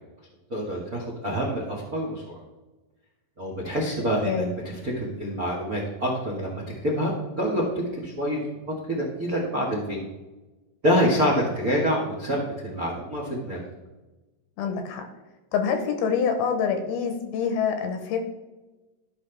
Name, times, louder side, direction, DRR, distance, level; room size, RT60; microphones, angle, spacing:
voice 1, 0.5-2.2 3.4-7.6 7.9-8.4 8.9-10.0 10.8-13.6, equal, 65° right, -1 dB, 0.8 m, -26 dB
voice 2, 4.2-4.5 14.6-15.0 15.5-18.2, left 6 dB, 75° left, 6 dB, 2.6 m, -26 dB
14.0 x 5.8 x 3.4 m, 1.1 s
omnidirectional pair, 4.9 m